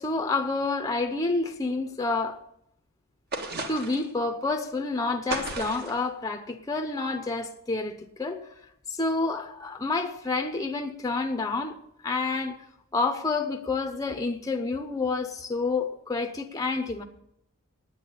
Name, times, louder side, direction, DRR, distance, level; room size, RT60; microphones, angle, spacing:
voice 1, 0.0-2.4 3.7-8.4 8.9-11.8 12.0-12.6 12.9-17.0, left 3 dB, 15° left, 0.7 m, -29 dB
sound 1, 3.3-4.1 5.3-6.0, right 3 dB, 45° right, 1.5 m, -34 dB
9.2 x 9.2 x 8.5 m
head